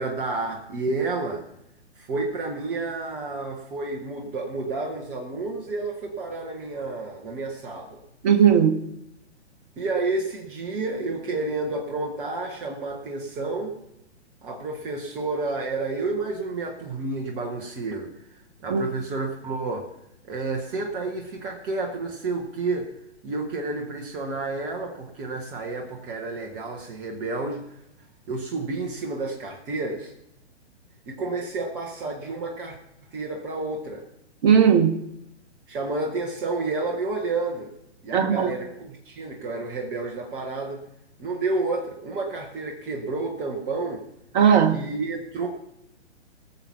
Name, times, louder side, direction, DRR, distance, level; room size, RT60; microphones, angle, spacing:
voice 1, 0.0-1.5 2.0-8.0 9.8-13.7 14.4-18.1 18.6-19.9 20.2-22.8 23.2-27.6 28.3-30.1 31.1-32.8 33.1-34.1 35.7-37.7 38.0-40.8 41.2-44.0 44.7-45.5, right 3 dB, 5° right, 0.4 m, -30 dB
voice 2, 8.2-8.8 18.7-18.8 34.4-35.0 38.1-38.5 44.3-44.8, right 8 dB, 40° right, 1.2 m, -17 dB
18.0 x 7.2 x 5.5 m
hypercardioid pair, 130°, 35 cm